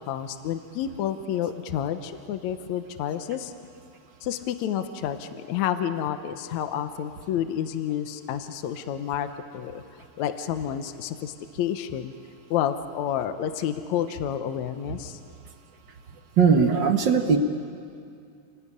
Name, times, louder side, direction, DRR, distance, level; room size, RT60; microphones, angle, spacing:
voice 1, 0.0-3.5 4.2-9.3 9.5-9.8 10.2-12.1 12.5-15.2, left 10 dB, 70° left, 8 dB, 2.0 m, -29 dB
voice 2, 16.4-17.4, right 5 dB, 55° right, 5 dB, 1.3 m, -19 dB
30.0 x 19.5 x 9.8 m, 2.4 s
omnidirectional pair, 3.8 m